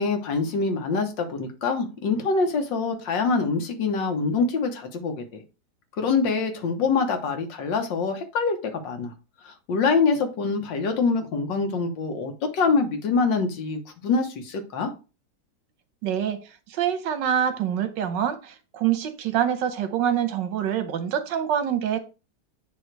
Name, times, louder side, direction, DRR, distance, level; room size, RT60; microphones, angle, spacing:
voice 1, 0.0-5.4 6.0-9.1 9.4-14.9, left 4 dB, 85° left, 1.8 m, -25 dB
voice 2, 16.0-16.4 16.7-22.0, right 9 dB, 85° right, 1.5 m, -25 dB
9.2 x 3.1 x 4.5 m
omnidirectional pair, 1.9 m